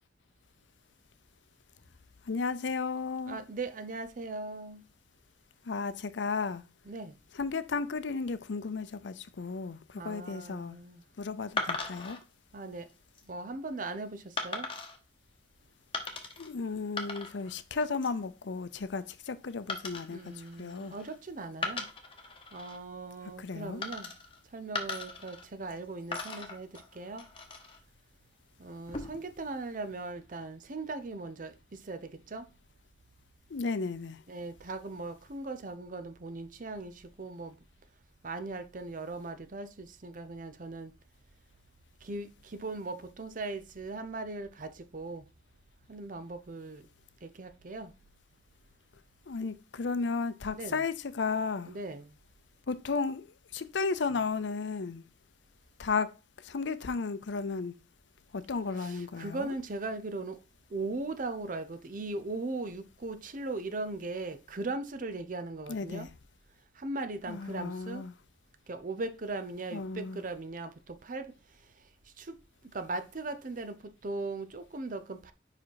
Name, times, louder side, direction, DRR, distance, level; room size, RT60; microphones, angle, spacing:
voice 1, 2.2-3.4 5.6-6.6 7.3-10.8 11.2-12.2 16.4-21.0 23.4-23.8 33.5-34.2 49.3-51.8 52.7-53.3 53.5-55.1 55.8-57.8 58.3-59.5 65.7-66.1 67.3-68.1 69.7-70.2, left 4 dB, 75° left, 0.6 m, -34 dB
voice 2, 3.3-4.8 6.9-7.1 10.0-11.0 12.5-12.9 13.3-14.7 20.1-21.8 22.5-24.1 24.5-26.7 27.0-27.2 28.6-31.5 31.9-32.0 32.3-32.5 34.3-36.9 37.2-37.5 38.2-40.9 42.0-45.2 45.9-46.8 47.2-47.9 50.5-50.8 51.7-52.1 58.8-60.4 60.7-66.1 66.8-68.0 68.7-70.7 71.0-71.3 72.2-72.3 72.7-73.8 74.0-75.3, right 3 dB, 45° right, 0.7 m, -38 dB
sound 1, 11.6-12.2 12.9-13.2 14.4-15.0 15.9-16.5 16.8-17.5 17.8-18.2 19.7-21.1 21.5-22.8 23.8-24.4 24.7-25.8 26.1-27.8 28.7-29.3, left 3 dB, 30° left, 1.1 m, -38 dB
5.2 x 4.9 x 4.6 m
head